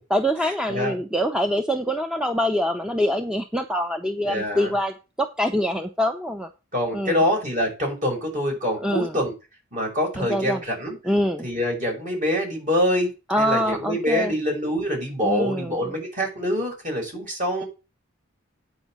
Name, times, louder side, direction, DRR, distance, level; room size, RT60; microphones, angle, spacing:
voice 1, 0.1-6.5 6.9-7.2 8.8-9.2 10.2-10.6 11.0-11.5 13.3-14.3 15.2-15.8, equal, 5° right, 6 dB, 0.7 m, -24 dB
voice 2, 4.2-4.7 6.7-9.3 9.7-11.0 11.4-13.1 13.4-17.7, equal, 40° right, 0 dB, 6.0 m, -25 dB
9.5 x 5.5 x 7.4 m, 0.29 s
head